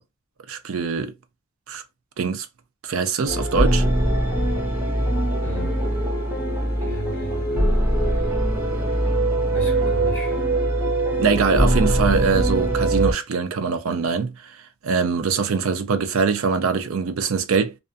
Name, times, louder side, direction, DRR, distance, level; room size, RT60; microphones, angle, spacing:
voice 1, 0.5-1.1 1.7-1.8 2.2-2.5 2.8-3.8 11.2-17.8, right 5 dB, 70° right, 0.4 m, -23 dB
sound 1, 3.3-13.1, right 1 dB, 10° right, 0.7 m, -22 dB
voice 2, 5.4-5.8 6.8-7.8 8.1-8.3 9.5-10.4, right 2 dB, 10° left, 1.2 m, -35 dB
2.4 x 2.4 x 2.5 m
head